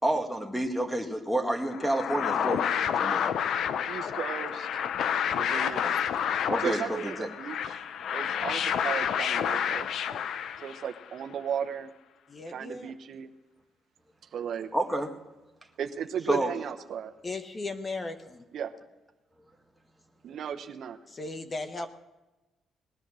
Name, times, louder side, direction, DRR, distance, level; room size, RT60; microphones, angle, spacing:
voice 1, 0.0-2.6 3.0-3.2 6.5-7.3 14.7-15.1 16.3-16.5, right 1 dB, ahead, 5 dB, 2.0 m, -29 dB
sound 1, 1.7-11.0, left 8 dB, 70° left, 0.6 m, -29 dB
voice 2, 3.9-4.8 5.3-6.3 6.6-9.9 10.6-11.9 12.5-13.3 14.3-14.7 15.8-17.1 18.5-18.7 20.2-21.0, right 8 dB, 65° right, 6 dB, 0.9 m, -35 dB
voice 3, 12.3-12.9 17.2-18.4 21.1-21.9, left 3 dB, 30° left, 8 dB, 1.2 m, -36 dB
19.5 x 10.5 x 6.3 m, 1.1 s
cardioid pair, 90°, 0 cm